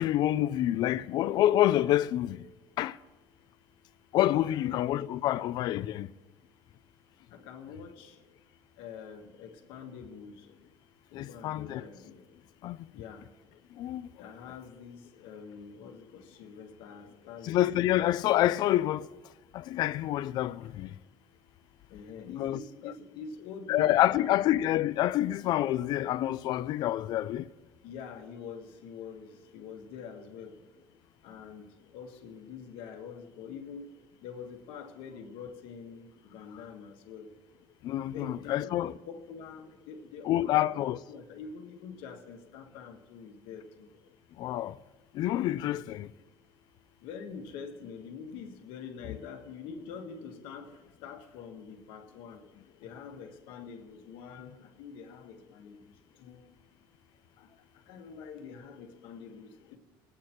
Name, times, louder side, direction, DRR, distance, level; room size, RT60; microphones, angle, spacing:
voice 1, 0.0-2.4 2.8-2.9 4.1-6.1 11.2-11.8 12.6-12.8 13.8-14.0 17.5-19.0 19.7-20.9 22.4-22.6 23.7-27.4 37.8-38.9 40.3-41.0 44.4-44.7 45.2-46.1, left 13 dB, 55° left, 0.4 m, -27 dB
voice 2, 4.5-5.0 7.3-8.2 8.8-10.5 11.1-12.2 12.9-13.3 14.2-17.7 20.6-20.7 21.9-24.5 27.8-30.7 31.2-37.3 38.1-43.9 45.7-45.8 47.0-52.4 52.8-56.5 57.4-59.8, left 6 dB, 75° left, 1.5 m, -45 dB
21.0 x 8.5 x 4.5 m
cardioid pair, 145°, 9 cm